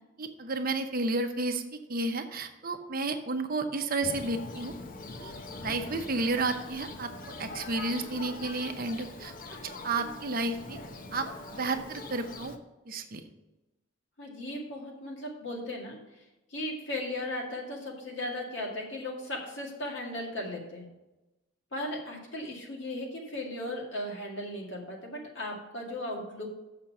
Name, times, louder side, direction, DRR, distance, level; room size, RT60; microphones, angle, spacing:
voice 1, 0.2-1.6 1.9-4.7 5.2-5.3 5.6-10.8 11.1-12.5 12.9-13.2, right 3 dB, 45° right, 6 dB, 0.8 m, -32 dB
Thunder, 4.0-12.6, left 2 dB, 45° left, 0.7 m, -42 dB
voice 2, 14.2-16.2 16.5-20.9 21.7-26.5, left 1 dB, 65° left, -1 dB, 2.2 m, -37 dB
7.3 x 5.9 x 6.6 m, 1.0 s
head